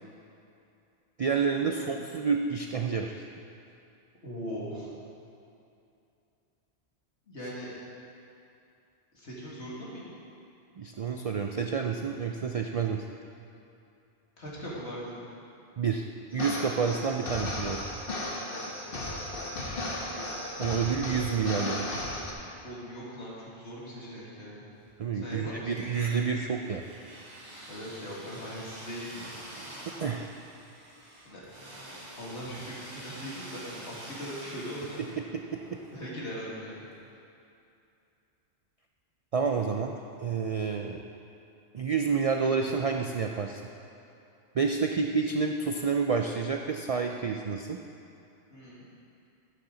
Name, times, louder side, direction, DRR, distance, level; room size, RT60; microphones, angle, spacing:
voice 1, 1.2-3.2 10.8-13.0 15.8-16.0 16.3-17.8 20.6-21.9 25.0-26.8 29.6-29.7 30.0-30.3 35.5-35.8 39.3-41.0 41.7-43.6 44.5-47.8, right 5 dB, 65° right, 3 dB, 0.3 m, -29 dB
voice 2, 1.7-2.0 4.2-4.9 7.3-7.7 9.1-10.1 14.4-15.3 22.6-24.6 25.1-25.7 27.7-29.4 31.2-31.4 32.2-35.0 35.9-36.9 48.5-48.9, equal, 80° left, -6 dB, 2.4 m, -40 dB
sound 1, 16.3-22.3, left 1 dB, 55° left, 1.4 m, -35 dB
sound 2, 24.8-25.4 25.7-36.6, right 1 dB, 40° right, 2.1 m, -46 dB
11.5 x 8.4 x 3.9 m, 2.7 s
omnidirectional pair, 1.1 m